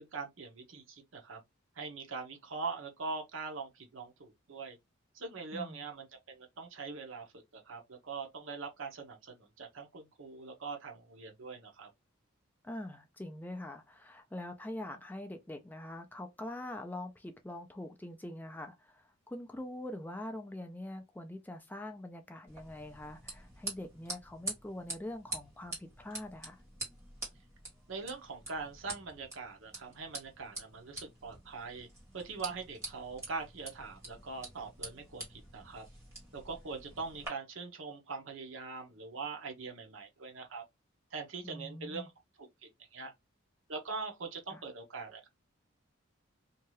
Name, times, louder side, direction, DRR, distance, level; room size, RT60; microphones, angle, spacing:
voice 1, 0.0-1.4 1.8-4.8 5.1-7.3 7.5-11.9 27.9-31.9 32.1-35.8 36.3-40.6 41.1-42.1 42.4-42.5 42.9-43.1 43.7-45.3, right 4 dB, 70° right, 0.8 m, -42 dB
voice 2, 5.5-5.9 12.6-26.6 41.4-42.1 44.5-44.6, left 1 dB, 10° left, 0.3 m, -44 dB
sound 1, 22.5-37.3, right 2 dB, 15° right, 1.4 m, -46 dB
2.7 x 2.3 x 3.0 m
head